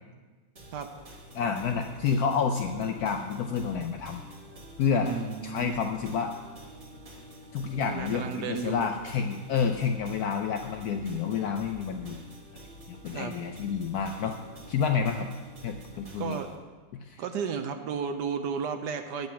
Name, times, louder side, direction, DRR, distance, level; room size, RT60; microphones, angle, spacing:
sound 1, 0.6-16.6, right 1 dB, 30° right, 1.2 m, -48 dB
voice 1, 1.3-4.2 4.8-5.1 5.4-6.3 7.5-12.1 12.9-14.4 14.7-15.3 15.6-16.4 17.0-17.2, left 6 dB, 75° left, 5 dB, 0.9 m, -29 dB
voice 2, 5.0-5.7 7.9-8.9 13.1-13.4 16.2-16.6 17.2-19.3, right 6 dB, 70° right, 7 dB, 1.1 m, -33 dB
9.2 x 5.3 x 6.8 m, 1.4 s
omnidirectional pair, 2.1 m